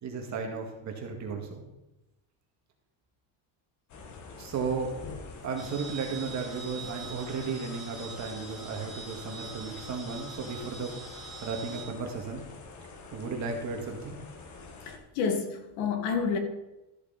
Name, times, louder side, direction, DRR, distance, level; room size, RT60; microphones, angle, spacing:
voice 1, 0.0-1.7 4.4-4.9 5.4-11.0 11.4-12.5 13.1-14.2, right 4 dB, 35° right, 2 dB, 1.9 m, -34 dB
sound 1, 3.9-15.0, left 4 dB, 35° left, 1.3 m, -47 dB
sound 2, 5.6-11.8, right 4 dB, ahead, 2.7 m, -44 dB
voice 2, 14.8-16.4, left 5 dB, 80° left, 4 dB, 2.1 m, -30 dB
13.5 x 8.0 x 4.0 m, 0.98 s
cardioid pair, 170°, 48 cm